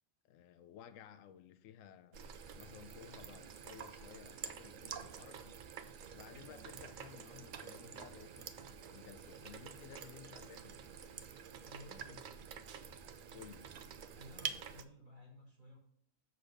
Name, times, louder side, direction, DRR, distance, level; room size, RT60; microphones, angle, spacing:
voice 1, 0.2-2.3 2.5-5.6 6.1-11.0 13.3-13.8, left 9 dB, 70° left, 0.9 m, -56 dB
sound 1, 2.1-14.8, right 7 dB, 90° right, 0.4 m, -48 dB
voice 2, 11.6-12.2 14.1-15.8, left 1 dB, 35° right, 3.1 m, -56 dB
6.8 x 4.1 x 6.4 m
omnidirectional pair, 1.5 m